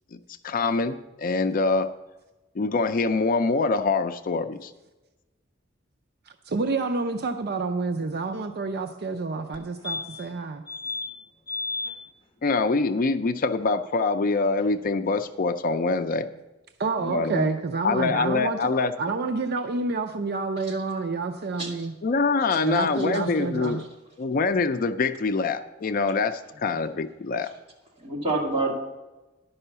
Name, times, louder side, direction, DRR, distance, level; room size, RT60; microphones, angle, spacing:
voice 1, 0.4-1.9 2.6-4.7 12.4-16.3 17.0-17.5 17.8-18.9 22.0-23.9 24.2-27.5, left 4 dB, 45° left, 9 dB, 0.4 m, -24 dB
voice 2, 6.5-10.6 16.8-18.7 19.0-21.9 22.6-23.8, right 3 dB, 55° right, 6 dB, 0.5 m, -28 dB
sound 1, 9.5-9.6 9.8-10.3 10.7-11.1 11.5-11.9 14.3-14.4 14.6-14.7, left 4 dB, 25° left, 1.0 m, -32 dB
voice 3, 22.5-23.1 28.0-28.7, right 2 dB, 30° right, -3 dB, 2.4 m, -29 dB
11.0 x 5.5 x 6.8 m, 1.1 s
head